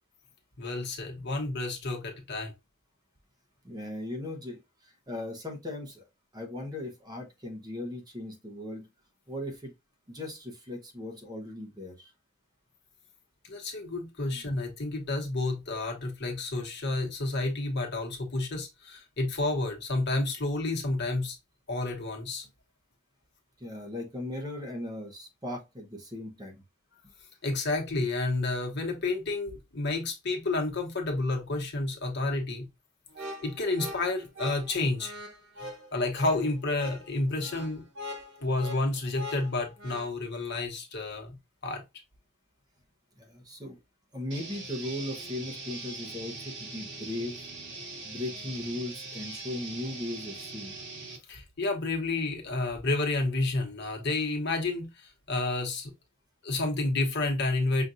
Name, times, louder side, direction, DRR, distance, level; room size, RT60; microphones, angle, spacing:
voice 1, 0.6-2.5 13.5-21.4 21.7-22.5 27.4-32.7 33.2-35.1 35.6-37.8 38.4-41.4 41.6-41.8 51.3-55.9 56.4-57.8, left 2 dB, 55° left, 1.1 m, -30 dB
voice 2, 3.6-6.1 6.3-8.9 9.3-9.7 10.1-12.1 14.2-14.4 23.6-26.6 43.2-43.8 44.1-47.4 48.0-50.7, left 1 dB, 20° right, 0.9 m, -38 dB
sound 1, 33.1-40.1, left 1 dB, 85° right, 1.0 m, -42 dB
sound 2, 44.3-51.2, right 3 dB, 60° right, 1.5 m, -41 dB
5.8 x 2.5 x 2.5 m
head